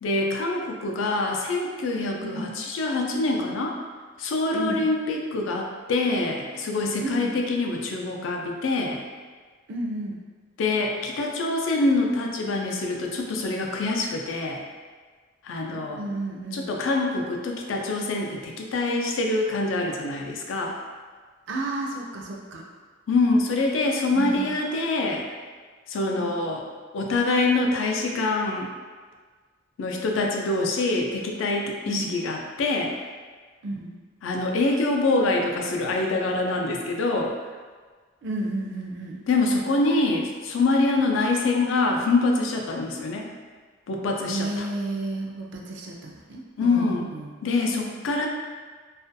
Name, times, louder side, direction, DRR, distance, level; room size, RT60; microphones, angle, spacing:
voice 1, 0.0-3.8 4.2-9.0 10.6-14.6 15.4-16.0 16.5-20.8 23.1-25.2 25.9-26.6 26.9-28.7 29.8-32.9 34.2-37.3 39.3-43.3 43.9-44.7 46.6-47.1 47.4-48.3, left 2 dB, 80° left, 1 dB, 0.4 m, -25 dB
voice 2, 2.2-2.6 4.5-4.8 7.0-7.4 9.7-10.2 15.9-16.7 21.5-22.6 24.1-24.5 26.2-26.3 31.9-32.1 33.6-33.9 38.2-39.2 44.3-47.3, right 2 dB, 65° right, 0 dB, 0.4 m, -32 dB
2.4 x 2.2 x 2.6 m, 1.5 s
head